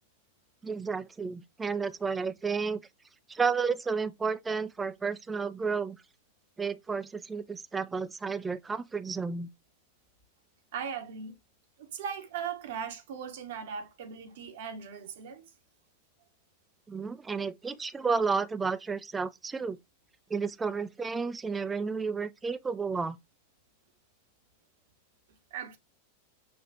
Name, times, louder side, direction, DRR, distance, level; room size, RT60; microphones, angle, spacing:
voice 1, 0.6-2.8 3.3-6.0 6.6-9.5 16.9-19.8 20.3-23.2, right 5 dB, 15° right, 0.4 m, -32 dB
voice 2, 10.7-11.4 11.8-15.5 25.5-25.8, right 7 dB, 55° right, 1.1 m, -38 dB
6.4 x 2.5 x 2.8 m
figure-of-eight pair, 90°, 0 cm